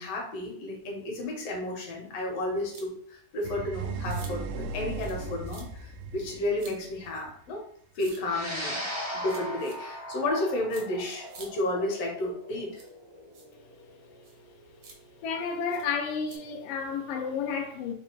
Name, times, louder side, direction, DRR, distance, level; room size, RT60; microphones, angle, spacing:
voice 1, 0.0-7.7 8.0-8.8 9.1-12.8, left 1 dB, 65° left, 2.0 m, -32 dB
sound 1, 2.7-2.9 3.4-3.5 4.1-4.3 5.0-5.2 5.4-5.6 6.6-6.8 8.0-8.2 9.2-9.8 10.7-10.8 11.3-11.5 12.7-12.9 13.3-13.5 14.2-14.4 14.8-15.0 15.7-15.8 16.3-16.4, right 4 dB, 65° right, 1.4 m, -49 dB
sound 2, 3.4-7.3, right 4 dB, 85° right, 2.0 m, -36 dB
sound 3, 8.2-16.8, equal, 25° right, 0.3 m, -39 dB
voice 2, 15.2-17.9, left 6 dB, 80° left, 1.4 m, -31 dB
5.0 x 2.3 x 4.4 m
omnidirectional pair, 3.3 m